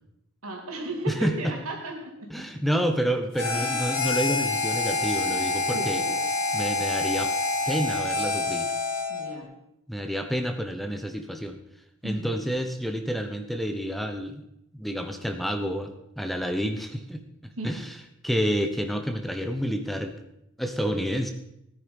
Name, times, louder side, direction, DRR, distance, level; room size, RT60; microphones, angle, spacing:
voice 1, 0.4-2.3 3.5-3.8 5.3-6.1 9.1-9.5 12.0-12.4 17.6-17.8, right 1 dB, 85° right, 1 dB, 3.4 m, -35 dB
voice 2, 1.1-1.5 2.3-6.0 6.5-7.3 7.7-8.7 9.9-11.6 12.0-14.4 14.7-17.2 17.6-18.0 18.2-20.1 20.6-21.3, equal, ahead, 6 dB, 1.0 m, -29 dB
Harmonica, 3.3-9.3, left 3 dB, 75° left, 4.5 m, -27 dB
17.0 x 9.9 x 5.3 m, 0.81 s
head